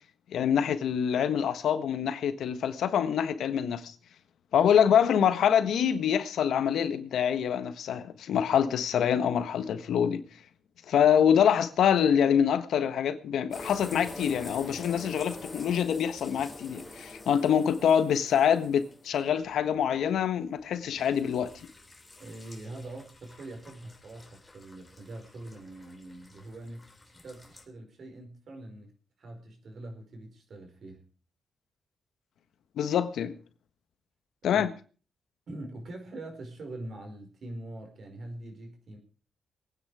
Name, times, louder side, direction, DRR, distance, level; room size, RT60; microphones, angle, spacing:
voice 1, 0.3-3.9 4.5-10.2 10.9-21.5 32.8-33.4 34.4-34.7, left 8 dB, 80° left, 1.5 m, -25 dB
sound 1, 13.5-27.6, left 2 dB, 15° left, 3.1 m, -47 dB
voice 2, 22.2-28.9 29.2-31.1 34.5-34.7 35.5-39.0, right 2 dB, 55° right, 5.0 m, -43 dB
23.0 x 9.5 x 4.9 m
cardioid pair, 115°, 0 cm